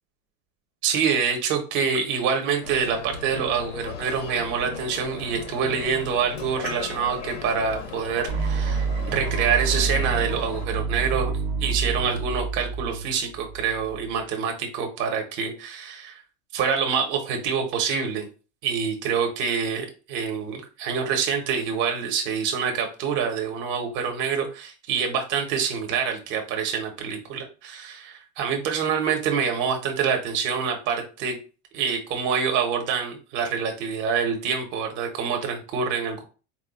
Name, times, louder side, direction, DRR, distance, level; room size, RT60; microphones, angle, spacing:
voice 1, 0.8-16.2 16.5-18.3 18.6-31.4 31.7-36.2, right 6 dB, 30° right, 4 dB, 0.9 m, -26 dB
sound 1, 2.6-10.7, left 5 dB, 85° left, 1.2 m, -37 dB
sound 2, 8.3-14.2, right 4 dB, 55° right, 0.6 m, -28 dB
4.4 x 2.3 x 4.0 m, 0.34 s
supercardioid pair, 170°, 36 cm